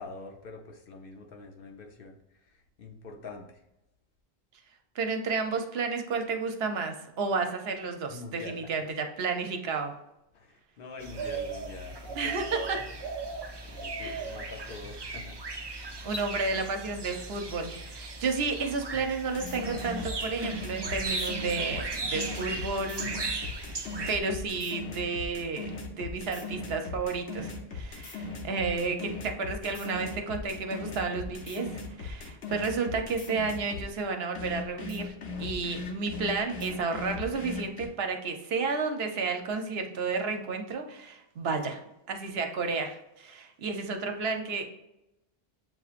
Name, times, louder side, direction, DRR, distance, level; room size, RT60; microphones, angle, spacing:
voice 1, 0.0-3.6 8.1-8.6 10.3-12.3 13.6-15.4 15.9-16.1, left 3 dB, 60° left, 3 dB, 0.8 m, -45 dB
voice 2, 4.9-9.9 12.1-12.8 14.0-14.4 16.0-23.1 24.1-35.1 35.4-41.8 42.1-44.7, right 4 dB, 70° right, 5 dB, 0.9 m, -32 dB
sound 1, 11.0-24.2, right 3 dB, 35° right, 0.4 m, -37 dB
sound 2, 11.4-11.5 11.9-12.3 14.0-14.1 14.6-14.8 16.0-16.3, left 3 dB, 40° left, 0.4 m, -44 dB
sound 3, 19.3-33.9 34.3-37.9, left 4 dB, 90° left, 1.2 m, -39 dB
7.4 x 2.8 x 2.4 m, 0.89 s
omnidirectional pair, 1.1 m